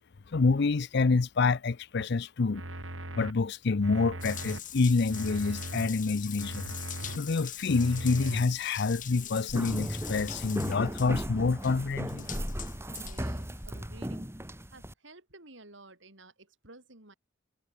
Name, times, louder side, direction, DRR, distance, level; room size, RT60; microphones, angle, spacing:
voice 1, 0.3-2.6 3.2-6.7 7.2-12.3, left 4 dB, 60° left, 0.6 m, -27 dB
sound 1, 2.0-2.1 2.5-3.3 3.8-4.6 5.1-5.9 6.4-7.2 7.7-8.5, right 1 dB, 85° right, 5.2 m, -39 dB
Water tap faucet / Bathtub (filling or washing) / Drip, 4.2-14.0, left 7 dB, 40° left, 4.2 m, -42 dB
sound 2, 9.5-14.9, right 1 dB, 15° right, 2.2 m, -37 dB
voice 2, 12.9-14.3 14.6-17.1, right 2 dB, 65° right, 6.0 m, -53 dB
head